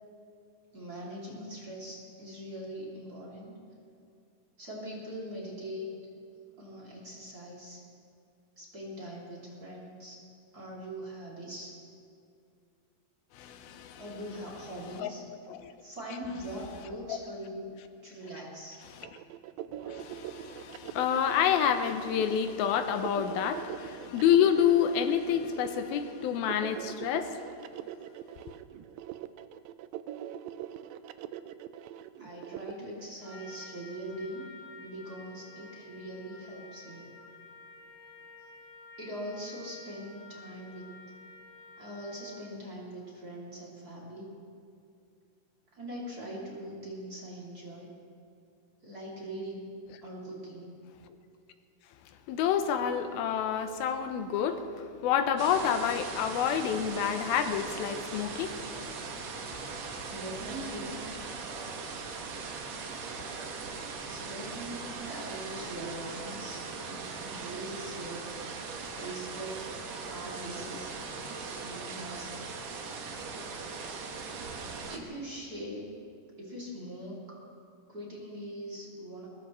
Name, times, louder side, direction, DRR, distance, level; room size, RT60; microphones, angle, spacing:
voice 1, 0.7-3.6 4.6-5.9 6.6-7.8 8.6-10.2 10.5-11.8 13.9-15.2 15.8-17.8 18.0-18.8 32.2-34.5 34.8-37.1 39.0-40.9 41.8-44.3 45.7-47.9 48.8-49.8 50.0-50.7 60.1-61.0 64.1-68.3 69.0-70.9 71.6-72.4 74.9-75.8 76.4-77.4 77.9-79.3, right 1 dB, 25° right, -4 dB, 2.7 m, -42 dB
voice 2, 13.3-14.0 15.0-15.1 15.5-15.7 17.1-17.2 19.0-19.1 19.8-27.4 52.3-58.6 62.4-62.5, left 8 dB, 80° left, 8 dB, 2.6 m, -28 dB
sound 1, 19.0-32.7, right 11 dB, 80° right, 2.2 m, -42 dB
Trumpet, 33.2-42.6, left 3 dB, 30° left, 2.9 m, -51 dB
sound 2, 55.4-75.0, right 4 dB, 60° right, 2.0 m, -40 dB
21.5 x 21.0 x 3.1 m, 2.5 s
omnidirectional pair, 4.4 m